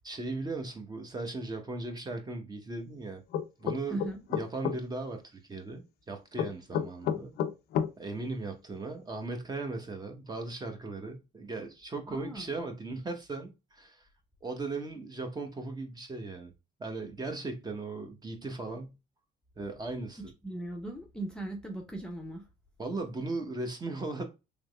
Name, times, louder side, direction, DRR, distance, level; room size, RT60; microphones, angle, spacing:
voice 1, 0.0-3.2 3.6-4.0 4.3-7.4 8.0-14.1 14.4-16.5 16.8-19.0 19.6-20.2 22.8-24.2, right 3 dB, 25° right, 0.9 m, -37 dB
sound 1, 3.3-4.8 6.4-7.9, left 8 dB, 75° left, 0.5 m, -30 dB
voice 2, 12.1-12.4 20.4-22.4, right 2 dB, 5° left, 0.7 m, -38 dB
3.5 x 3.1 x 2.2 m
cardioid pair, 110°, 17 cm